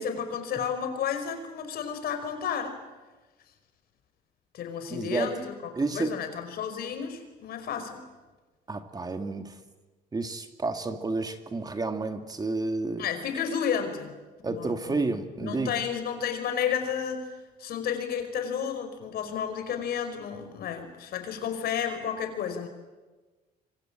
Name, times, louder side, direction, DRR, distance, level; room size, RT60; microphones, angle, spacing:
voice 1, 0.0-2.8 4.5-8.0 13.0-14.1 14.4-15.0 15.4-22.7, left 7 dB, 65° left, 7 dB, 5.2 m, -32 dB
voice 2, 4.9-5.3 5.8-6.1 8.7-9.5 10.1-13.1 14.4-15.7, right 3 dB, 20° right, 7 dB, 2.1 m, -30 dB
26.0 x 25.0 x 8.9 m, 1.2 s
cardioid pair, 110°, 17 cm